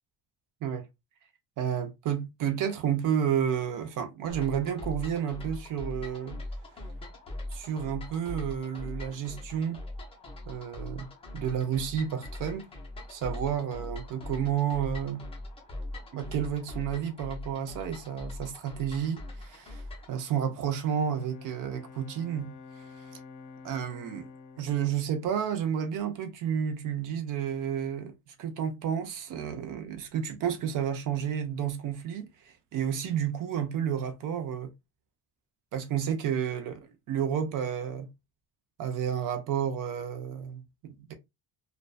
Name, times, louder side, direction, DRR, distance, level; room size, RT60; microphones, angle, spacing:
voice 1, 1.6-6.4 7.5-9.8 10.5-11.1 11.3-12.7 13.1-15.3 16.1-23.2 23.6-24.3 24.6-34.7 35.7-38.1 38.8-41.1, right 8 dB, 50° right, 0.5 m, -31 dB
sound 1, 4.3-20.2, left 1 dB, 15° left, 0.4 m, -41 dB
Bowed string instrument, 20.8-26.3, left 4 dB, 80° left, 0.6 m, -50 dB
2.4 x 2.2 x 2.3 m
cardioid pair, 175°, 43 cm